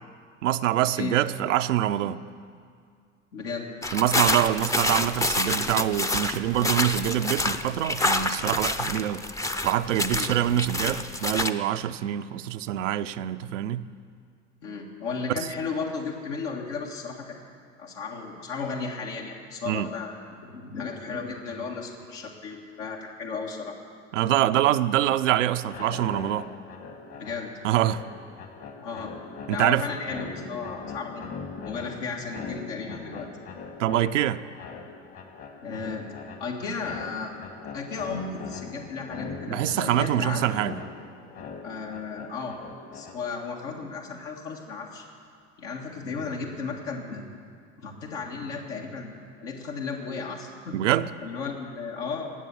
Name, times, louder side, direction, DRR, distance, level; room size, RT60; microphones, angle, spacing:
voice 1, 0.4-2.2 3.9-9.3 9.6-13.9 19.7-19.9 24.1-26.5 27.6-28.0 29.5-29.8 33.8-34.4 39.5-40.8 50.7-51.1, right 12 dB, 85° right, 11 dB, 0.6 m, -25 dB
voice 2, 3.3-3.7 10.1-10.3 14.6-17.4 17.8-20.1 20.4-23.8 27.2-27.5 28.8-29.1 29.5-31.3 31.7-33.3 35.6-36.1 36.4-37.4 37.7-40.5 41.6-42.6 42.9-45.0 45.6-47.3 47.8-49.1 49.4-50.8 51.2-52.3, left 4 dB, 75° left, -1 dB, 1.9 m, -34 dB
sound 1, 3.8-11.5, left 2 dB, 10° left, 0.6 m, -27 dB
sound 2, 25.6-43.5, left 5 dB, 40° left, 1.7 m, -41 dB
19.0 x 7.6 x 7.0 m, 2.2 s
hypercardioid pair, 85°, 36 cm